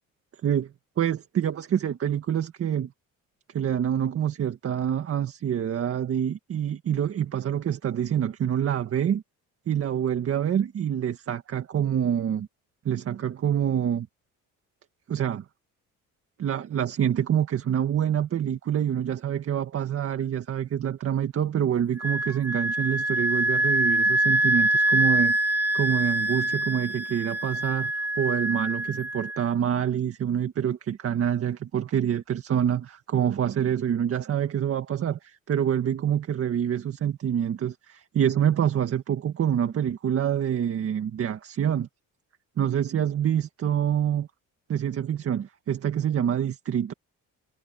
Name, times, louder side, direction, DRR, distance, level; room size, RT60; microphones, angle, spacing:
voice 1, 0.4-2.9 3.5-9.2 9.7-12.5 12.8-14.1 15.1-15.4 16.4-41.9 42.6-44.3 44.7-46.9, right 9 dB, 45° right, 1.8 m, -26 dB
Wind instrument woodwind instrument, 22.0-29.4, right 1 dB, 5° right, 3.0 m, -25 dB
cardioid pair, 135°, 32 cm